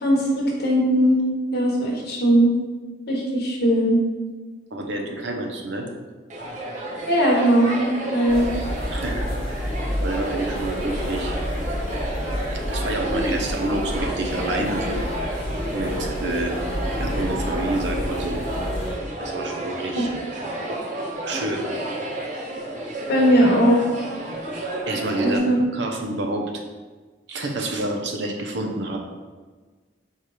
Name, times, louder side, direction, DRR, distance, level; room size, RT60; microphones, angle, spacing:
voice 1, 0.0-1.2 1.5-2.5 3.1-4.0 7.1-8.5 19.9-20.1 21.3-21.4 23.1-23.9 25.2-25.6, equal, 65° left, -3 dB, 1.0 m, -19 dB
voice 2, 4.7-5.9 8.9-9.7 10.0-11.3 12.7-15.4 15.7-16.5 17.0-18.4 19.2-20.1 21.3-21.6 24.9-25.4 25.7-26.6 27.3-29.0, right 2 dB, 85° right, 2 dB, 0.7 m, -28 dB
sound 1, 6.3-25.4, right 1 dB, 45° right, 0.8 m, -31 dB
sound 2, 8.3-18.9, equal, 30° left, 1.0 m, -29 dB
4.4 x 2.4 x 4.8 m, 1.4 s
head